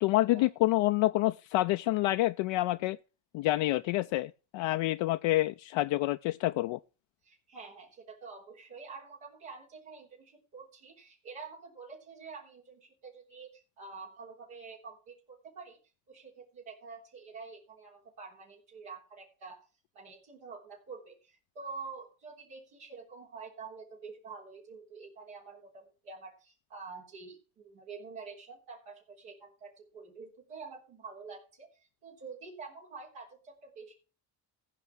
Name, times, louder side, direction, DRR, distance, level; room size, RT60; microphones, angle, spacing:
voice 1, 0.0-3.0 3.3-6.8, left 17 dB, 70° left, 0.5 m, -28 dB
voice 2, 7.2-15.8 16.1-19.6 19.9-33.9, right 4 dB, 85° right, 3.7 m, -47 dB
15.0 x 5.3 x 6.0 m
hypercardioid pair, 50°, 47 cm